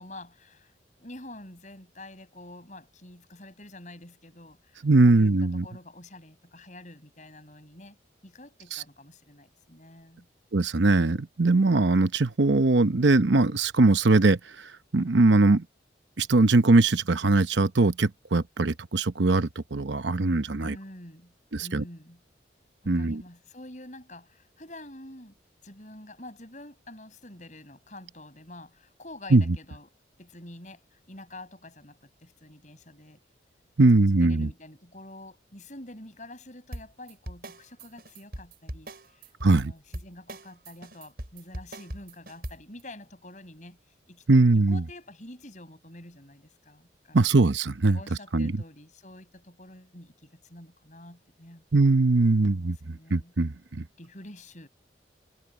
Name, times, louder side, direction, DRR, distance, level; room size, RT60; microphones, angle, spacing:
voice 1, 0.0-8.0 8.2-10.3 20.6-21.3 21.6-22.2 22.8-25.4 25.6-29.9 30.2-33.2 33.8-43.8 44.1-47.3 47.9-51.6 52.2-53.3 54.0-54.7, left 1 dB, 40° left, 7.7 m, -47 dB
voice 2, 4.8-5.6 8.7-8.8 10.5-14.4 14.9-15.6 16.2-20.8 21.5-21.8 22.9-23.2 29.3-29.4 33.8-34.5 39.4-39.7 44.3-44.8 47.1-48.0 48.3-48.5 51.7-53.8, right 3 dB, 75° right, 0.9 m, -21 dB
sound 1, 36.7-42.8, right 1 dB, 55° right, 7.2 m, -39 dB
head